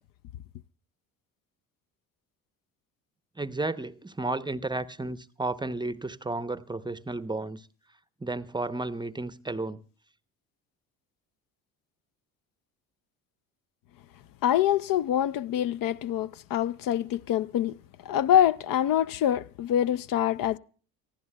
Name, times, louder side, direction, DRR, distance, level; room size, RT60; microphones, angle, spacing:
voice 1, 3.4-7.7 8.2-9.8, right 2 dB, 10° right, 0.7 m, -33 dB
voice 2, 14.4-17.8 18.0-20.6, left 10 dB, 50° left, 0.6 m, -25 dB
29.5 x 15.0 x 2.2 m
hypercardioid pair, 65°, 44 cm